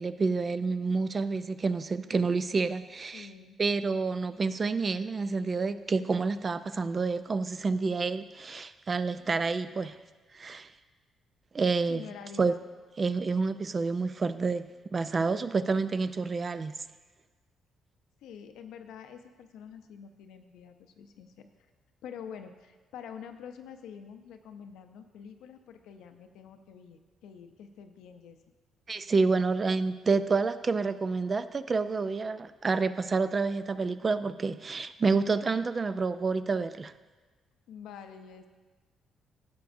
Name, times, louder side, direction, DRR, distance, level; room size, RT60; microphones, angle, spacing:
voice 1, 0.0-3.3 3.6-10.0 10.3-10.7 11.5-12.0 12.4-12.5 13.0-16.7 28.9-36.9, right 4 dB, 35° right, 13 dB, 0.3 m, -28 dB
voice 2, 3.1-3.6 11.9-12.6 18.2-21.5 22.0-28.4 37.7-38.5, left 7 dB, 90° left, 7 dB, 0.5 m, -47 dB
11.0 x 6.9 x 2.6 m, 1.3 s
cardioid pair, 90°, 0 cm